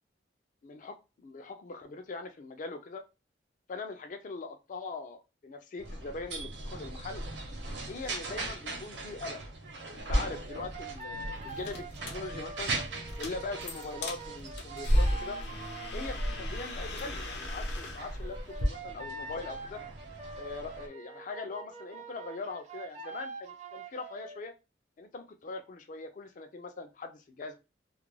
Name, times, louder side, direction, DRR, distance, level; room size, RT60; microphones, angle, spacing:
voice 1, 0.6-1.0 1.2-3.0 3.7-7.2 7.9-9.4 9.9-12.7 13.2-15.4 15.9-19.8 20.4-24.5 25.0-27.6, left 3 dB, 45° left, 6 dB, 0.3 m, -41 dB
sound 1, 5.8-20.9, right 3 dB, 75° right, 0.7 m, -41 dB
sound 2, 10.0-18.7, equal, 65° left, 0.7 m, -33 dB
sound 3, 10.2-16.4 18.2-24.4, right 3 dB, 40° right, 0.4 m, -45 dB
2.4 x 2.1 x 3.0 m, 0.27 s
head